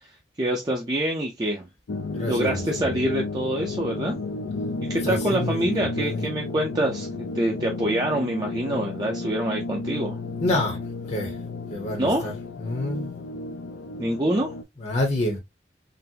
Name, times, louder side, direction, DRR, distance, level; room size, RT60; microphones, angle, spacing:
voice 1, 0.4-1.7 2.3-4.2 4.9-7.1 7.3-10.2 12.0-12.3 14.0-14.5, right 1 dB, 20° right, 0.5 m, -25 dB
sound 1, 1.9-14.6, left 2 dB, 80° left, 0.4 m, -32 dB
voice 2, 2.1-2.9 5.0-5.7 5.9-6.2 10.4-10.8 11.1-11.3 11.7-12.3 12.6-13.1 14.8-15.4, left 1 dB, 35° left, 0.8 m, -27 dB
3.9 x 2.0 x 2.7 m
head